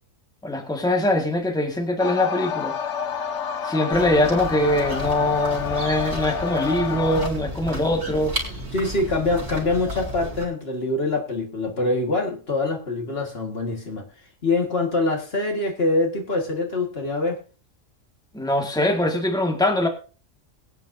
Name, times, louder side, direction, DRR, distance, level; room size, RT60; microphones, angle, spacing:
voice 1, 0.4-2.7 3.6-8.3 18.3-19.9, left 1 dB, 5° left, 1.8 m, -22 dB
sound 1, 2.0-7.3, left 7 dB, 65° left, 1.1 m, -29 dB
sound 2, 3.9-10.5, right 1 dB, 55° right, 3.9 m, -33 dB
voice 2, 8.7-14.1 14.4-17.4, left 2 dB, 50° left, 2.1 m, -24 dB
22.0 x 9.3 x 2.7 m
omnidirectional pair, 1.3 m